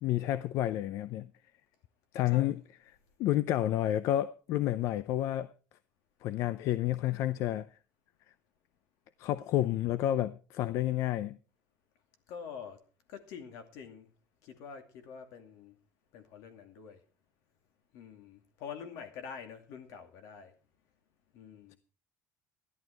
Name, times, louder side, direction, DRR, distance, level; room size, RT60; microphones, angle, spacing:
voice 1, 0.0-1.3 2.1-2.6 2.9-5.5 6.2-7.7 9.2-11.4, left 13 dB, 60° left, 0.5 m, -30 dB
voice 2, 12.3-12.8 13.1-14.1 14.4-15.7 16.1-17.0 17.9-20.5 21.3-21.8, left 6 dB, 80° left, 2.5 m, -46 dB
13.5 x 11.0 x 4.6 m
cardioid pair, 175°, 6 cm